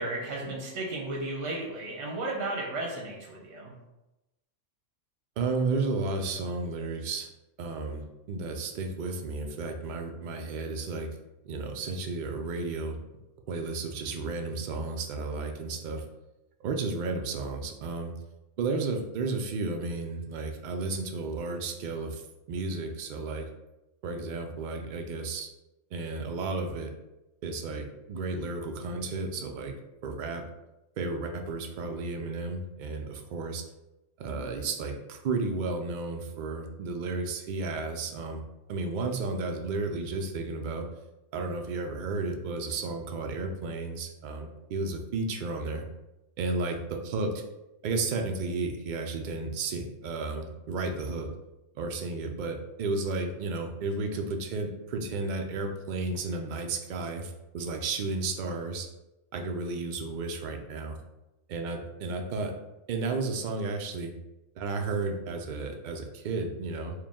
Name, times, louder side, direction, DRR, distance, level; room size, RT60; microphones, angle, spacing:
voice 1, 0.0-3.7, right 2 dB, 75° right, -2 dB, 1.1 m, -34 dB
voice 2, 5.4-7.3 7.6-11.1 11.4-13.0 13.5-16.0 16.6-18.1 18.6-22.2 22.5-23.5 24.0-25.5 25.9-26.9 27.4-29.7 30.0-30.4 31.0-33.6 34.2-38.4 38.7-40.9 41.3-45.9 46.4-47.4 47.8-51.3 51.8-58.9 59.3-61.0 61.5-62.6 62.9-64.1 64.6-66.9, right 3 dB, 55° right, 3 dB, 0.5 m, -33 dB
4.6 x 2.2 x 3.5 m, 0.98 s
omnidirectional pair, 1.3 m